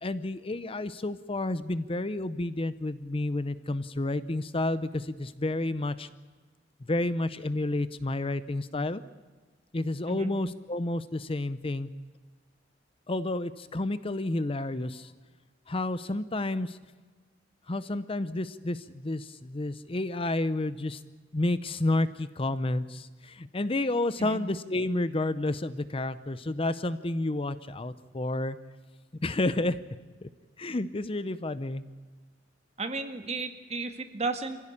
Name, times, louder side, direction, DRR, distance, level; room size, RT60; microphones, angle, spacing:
voice 1, 0.0-6.1 6.9-9.0 9.7-11.9 13.1-15.1 15.7-16.8 17.7-21.0 21.3-28.6 29.2-29.8 30.2-30.3 30.6-31.8, left 2 dB, 30° left, 14 dB, 0.7 m, -30 dB
voice 2, 32.8-34.6, right 3 dB, 35° right, 7 dB, 1.9 m, -33 dB
25.0 x 16.0 x 8.6 m, 1.4 s
head